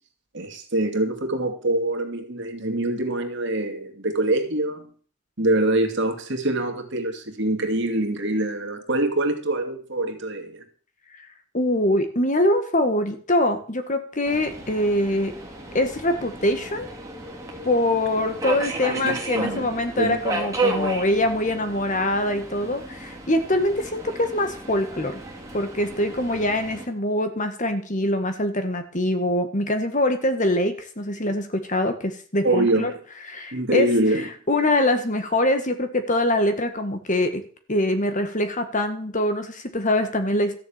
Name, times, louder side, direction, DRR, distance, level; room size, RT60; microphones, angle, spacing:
voice 1, 0.3-4.9 5.4-10.6 19.0-19.7 20.0-20.2 32.4-33.0 33.5-34.2, right 1 dB, 55° right, 5 dB, 2.5 m, -24 dB
voice 2, 11.5-15.3 15.7-16.9 17.6-25.2 25.5-32.9 33.3-33.9 34.5-37.4 37.7-40.6, left 1 dB, 35° left, 8 dB, 1.7 m, -23 dB
Subway metro underground, 14.2-26.9, right 2 dB, 15° right, 2.6 m, -33 dB
14.0 x 7.0 x 8.8 m, 0.43 s
head